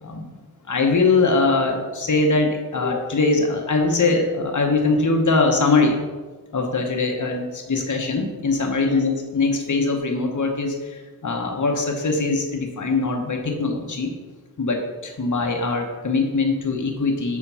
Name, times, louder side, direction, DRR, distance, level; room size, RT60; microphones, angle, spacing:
voice 1, 0.7-6.0 6.5-14.1 14.6-17.4, left 3 dB, 55° left, 2 dB, 1.0 m, -22 dB
7.2 x 4.5 x 5.6 m, 1.3 s
wide cardioid pair, 70°, 35 cm